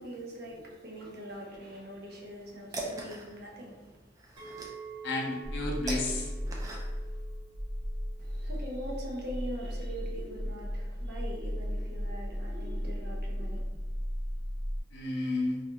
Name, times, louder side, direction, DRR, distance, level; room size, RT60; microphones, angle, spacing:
voice 1, 0.0-4.0 8.2-13.6, equal, 55° right, -2 dB, 0.6 m, -42 dB
sound 1, 2.2-7.2, right 2 dB, 20° right, 0.3 m, -42 dB
Chink clink, 4.4-9.5, right 6 dB, 80° right, 0.9 m, -49 dB
voice 2, 5.0-6.3 14.9-15.6, left 2 dB, 65° left, 0 dB, 0.5 m, -32 dB
sound 2, 5.4-14.8, equal, 5° left, 0.9 m, -35 dB
2.4 x 2.3 x 2.8 m, 1.2 s
head